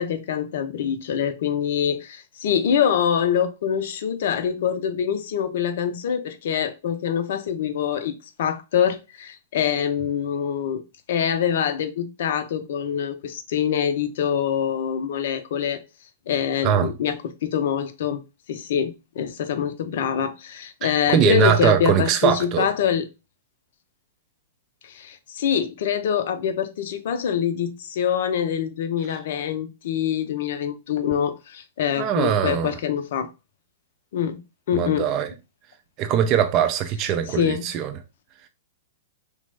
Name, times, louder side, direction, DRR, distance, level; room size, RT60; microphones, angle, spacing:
voice 1, 0.0-10.8 11.1-15.8 16.3-18.2 18.5-23.0 24.8-33.3 34.1-34.4 34.7-35.1 37.3-37.7, left 8 dB, 60° left, 0.5 m, -25 dB
voice 2, 20.8-22.7 32.0-32.7 34.7-35.3 36.0-37.9, right 9 dB, 40° right, 0.4 m, -21 dB
2.9 x 2.1 x 3.2 m
hypercardioid pair, 110°, 0 cm